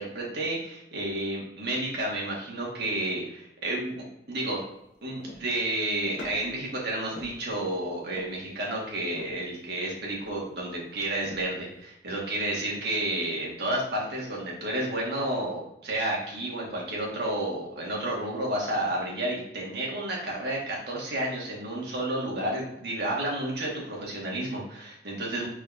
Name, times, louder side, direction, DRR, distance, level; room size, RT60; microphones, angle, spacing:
voice 1, 0.0-4.6 5.0-25.5, right 1 dB, 55° right, -3 dB, 1.6 m, -31 dB
footsteps boots metal, 4.4-4.5 5.2-5.7 6.1-6.6 7.1-7.8 8.1-8.6 9.2-9.5 10.2-10.7 11.2-11.7, left 1 dB, 75° left, 1.2 m, -45 dB
4.7 x 4.0 x 2.6 m, 0.80 s
head